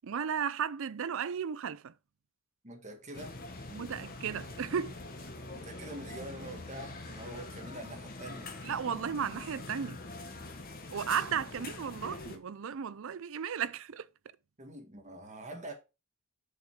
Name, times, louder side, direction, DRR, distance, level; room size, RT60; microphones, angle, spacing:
voice 1, 0.0-1.9 3.7-4.9 8.6-10.0 10.9-14.1, right 7 dB, 60° right, 0.4 m, -34 dB
voice 2, 2.6-3.4 5.5-8.5 11.3-11.4 14.6-15.7, right 1 dB, 30° right, 1.7 m, -45 dB
sound 1, 3.1-12.4, left 2 dB, 40° left, 1.3 m, -44 dB
6.7 x 5.1 x 4.8 m
head